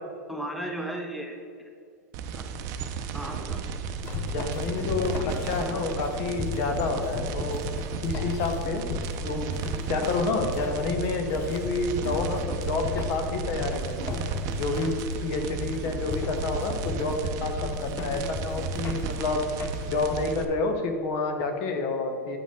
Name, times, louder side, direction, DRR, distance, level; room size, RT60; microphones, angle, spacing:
voice 1, 0.3-1.4 2.3-2.4 3.1-3.6 6.8-7.0 12.0-12.2, right 1 dB, ahead, 2 dB, 0.8 m, -35 dB
sound 1, 2.1-20.4, right 6 dB, 45° right, 0.6 m, -34 dB
sound 2, 4.0-20.0, left 5 dB, 30° left, 0.5 m, -36 dB
voice 2, 4.3-7.6 8.0-8.9 9.2-9.5 9.9-14.1 14.6-19.5 19.9-22.4, left 3 dB, 50° left, 5 dB, 1.0 m, -29 dB
8.7 x 5.2 x 3.7 m, 2.4 s
hypercardioid pair, 100°, 9 cm